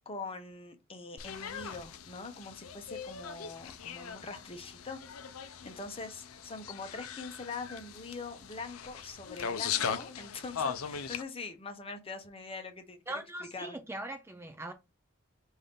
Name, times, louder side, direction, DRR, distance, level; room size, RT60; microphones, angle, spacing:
voice 1, 0.1-5.0 5.4-13.0 13.5-13.8, left 3 dB, 25° left, 0.8 m, -43 dB
sound 1, 1.2-11.2, left 7 dB, 85° left, 0.5 m, -39 dB
voice 2, 13.1-14.7, right 1 dB, 10° right, 0.4 m, -40 dB
5.4 x 2.7 x 3.5 m
head